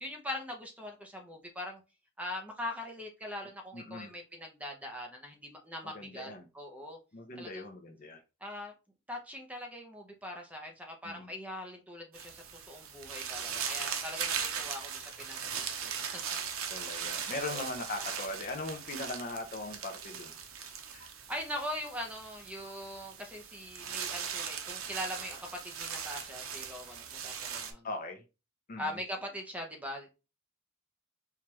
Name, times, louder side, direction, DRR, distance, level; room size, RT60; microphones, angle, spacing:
voice 1, 0.0-1.8 2.2-6.3 6.5-7.0 7.4-7.6 8.4-8.7 9.1-16.2 17.4-17.6 21.3-27.9 28.8-30.1, left 1 dB, 5° right, 3 dB, 0.6 m, -41 dB
voice 2, 3.7-4.1 5.8-6.5 7.1-8.2 11.0-11.3 16.7-20.3 20.9-21.1 27.8-28.2 28.7-29.0, left 2 dB, 40° left, 5 dB, 0.6 m, -40 dB
sound 1, 12.1-27.7, right 7 dB, 80° right, 0.7 m, -39 dB
4.5 x 2.4 x 3.1 m, 0.29 s
head